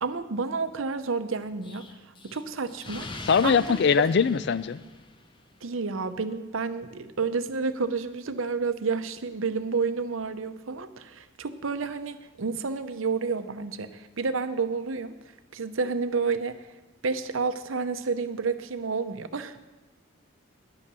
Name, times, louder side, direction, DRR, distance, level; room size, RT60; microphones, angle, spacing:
voice 1, 0.0-1.9 2.2-3.1 3.4-3.8 5.6-15.1 15.5-16.7 17.0-19.7, right 4 dB, 75° right, 11 dB, 0.7 m, -30 dB
Explosion, 1.6-5.5, left 2 dB, 25° left, 0.7 m, -42 dB
voice 2, 3.3-4.8, left 6 dB, 55° left, 16 dB, 0.4 m, -22 dB
10.5 x 8.4 x 6.9 m, 1.1 s
head